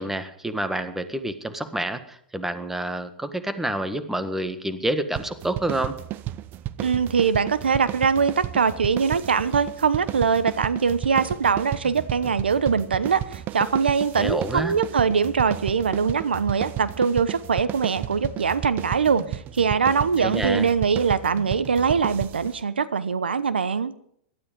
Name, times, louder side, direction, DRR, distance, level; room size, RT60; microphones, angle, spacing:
voice 1, 0.0-6.0 14.2-14.7 20.2-20.7, right 1 dB, 5° right, 10 dB, 1.6 m, -28 dB
sound 1, 5.2-22.6, right 13 dB, 35° right, 0.7 m, -33 dB
voice 2, 6.8-23.9, right 6 dB, 90° right, 15 dB, 0.9 m, -22 dB
17.5 x 13.0 x 5.2 m, 0.68 s
hypercardioid pair, 110°, 5 cm